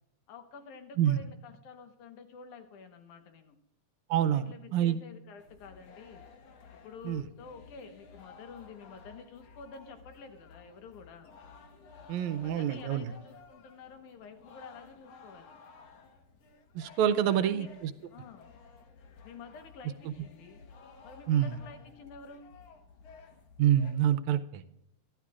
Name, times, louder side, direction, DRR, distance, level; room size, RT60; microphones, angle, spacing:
voice 1, 0.3-3.6 4.3-6.3 6.7-11.3 12.2-15.6 17.1-17.7 18.1-18.5 19.2-20.6 21.0-22.5, left 5 dB, 85° left, 7 dB, 2.7 m, -49 dB
voice 2, 4.1-5.0 7.1-7.3 12.1-13.1 16.8-17.7 21.3-21.6 23.6-24.6, right 10 dB, 80° right, 12 dB, 1.9 m, -27 dB
sound 1, 5.4-23.9, left 4 dB, 60° left, 2.2 m, -55 dB
23.5 x 12.0 x 2.4 m, 0.83 s
omnidirectional pair, 3.5 m